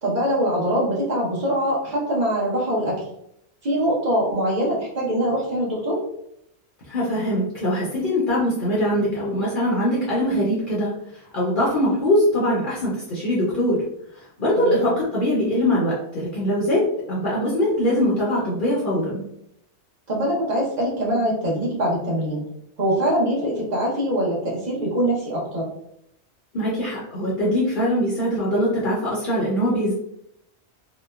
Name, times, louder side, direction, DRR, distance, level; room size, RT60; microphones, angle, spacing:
voice 1, 0.0-3.1 3.6-6.0 14.5-14.9 20.1-22.4 22.8-25.7, equal, 40° right, -5 dB, 0.9 m, -23 dB
voice 2, 6.9-10.9 11.3-13.8 14.1-19.2 26.5-29.9, equal, 55° left, -6 dB, 0.7 m, -22 dB
2.9 x 2.1 x 2.3 m, 0.76 s
omnidirectional pair, 1.1 m